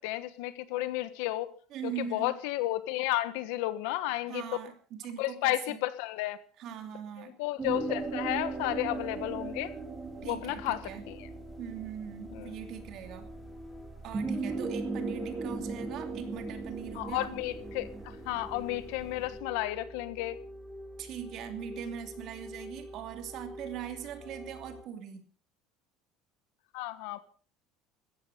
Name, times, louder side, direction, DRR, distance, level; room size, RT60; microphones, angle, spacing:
voice 1, 0.0-1.5 1.8-4.4 5.2-6.4 7.2-9.7 10.2-11.3 12.3-12.5 16.9-20.4 26.7-27.2, left 16 dB, 80° left, 13 dB, 1.4 m, -33 dB
voice 2, 1.7-2.3 4.3-5.8 6.6-7.3 10.2-11.0 11.6-13.3 14.0-17.3 21.0-25.2, right 9 dB, 50° right, 6 dB, 2.8 m, -41 dB
sound 1, 7.6-19.4, right 4 dB, 15° right, 3.3 m, -38 dB
sound 2, 8.2-24.8, equal, 10° left, 3.3 m, -48 dB
16.0 x 13.5 x 5.2 m, 0.43 s
cardioid pair, 160°, 0 cm